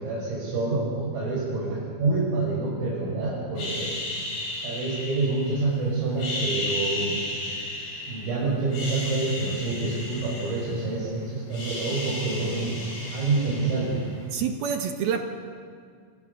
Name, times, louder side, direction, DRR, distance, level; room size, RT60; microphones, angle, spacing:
voice 1, 0.0-3.9 4.6-7.2 8.1-12.8 13.1-14.0, right 3 dB, 80° right, -7 dB, 9.0 m, -27 dB
sound 1, 3.6-5.7 6.1-8.3 8.6-11.1 11.3-14.2, left 2 dB, 50° left, 9.4 m, -34 dB
voice 2, 14.3-15.3, right 7 dB, 65° right, 4 dB, 2.7 m, -27 dB
28.0 x 26.5 x 7.0 m, 2.1 s
omnidirectional pair, 5.9 m